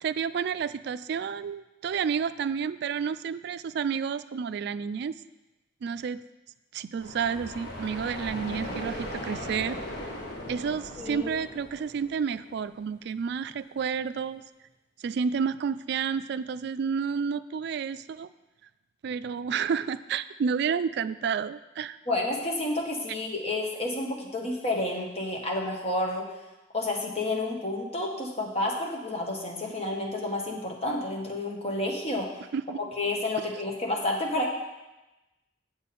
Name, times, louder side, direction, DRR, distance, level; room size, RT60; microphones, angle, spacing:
voice 1, 0.0-5.2 5.8-6.2 6.7-9.8 10.5-14.4 15.0-18.3 19.0-22.0 32.5-32.8, right 6 dB, 65° right, 14 dB, 0.3 m, -30 dB
sound 1, 7.0-12.7, left 1 dB, 60° left, 1.7 m, -38 dB
voice 2, 11.0-11.3 22.1-26.3 26.7-32.3 33.0-34.5, left 2 dB, 35° left, 0 dB, 1.4 m, -30 dB
8.1 x 7.2 x 4.3 m, 1.0 s
head